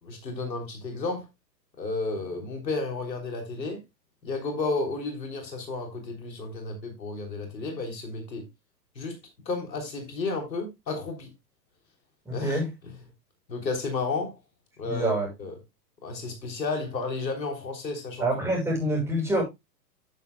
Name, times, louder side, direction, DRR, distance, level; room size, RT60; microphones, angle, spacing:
voice 1, 0.0-1.3 1.8-3.8 4.2-8.5 9.0-9.2 9.5-11.3 12.3-12.9 13.5-14.4 14.8-15.5 16.0-18.3, left 3 dB, 90° left, 3.5 m, -32 dB
voice 2, 12.3-12.7 14.8-15.3 18.2-19.4, right 1 dB, 5° right, 6.4 m, -26 dB
10.5 x 9.4 x 2.3 m
hypercardioid pair, 115°, 49 cm